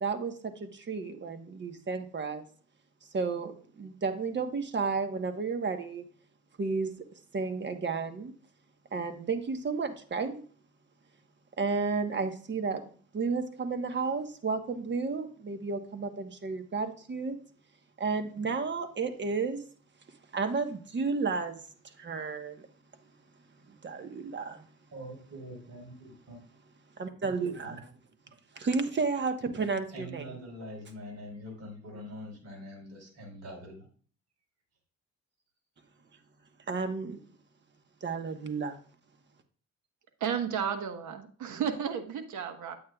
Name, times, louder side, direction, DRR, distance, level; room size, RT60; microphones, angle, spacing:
voice 1, 0.0-2.4 3.1-6.0 6.6-6.9 7.3-8.3 8.9-10.4 11.6-12.8 13.1-17.4 18.0-19.6 20.3-21.6 21.8-22.6 23.8-24.6 27.0-27.7 28.6-30.3 36.7-37.2 38.0-38.8, right 4 dB, 35° right, 7 dB, 1.2 m, -32 dB
voice 2, 24.9-26.4 27.6-27.8 29.9-33.9, equal, 55° right, 1 dB, 4.4 m, -44 dB
voice 3, 40.2-42.8, right 7 dB, 75° right, 7 dB, 1.3 m, -33 dB
9.3 x 8.5 x 2.4 m, 0.43 s
cardioid pair, 90°, 30 cm